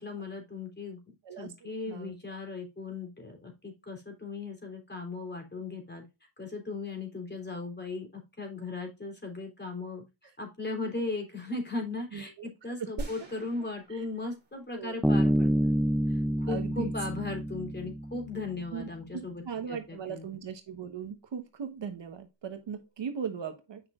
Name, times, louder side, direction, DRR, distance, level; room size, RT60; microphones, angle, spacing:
voice 1, 0.0-6.0 6.4-10.0 10.4-15.8 16.1-19.4 19.7-20.2, left 3 dB, 20° left, 3 dB, 3.4 m, -37 dB
voice 2, 12.1-13.1 13.9-14.1 14.7-15.0 16.5-16.9 18.7-23.8, right 7 dB, 60° right, 7 dB, 1.2 m, -39 dB
sound 1, 13.0-15.3, right 2 dB, 20° right, 3.0 m, -43 dB
Bass guitar, 15.0-18.5, right 1 dB, ahead, 0.4 m, -27 dB
8.6 x 5.7 x 2.4 m, 0.25 s
cardioid pair, 75°, 48 cm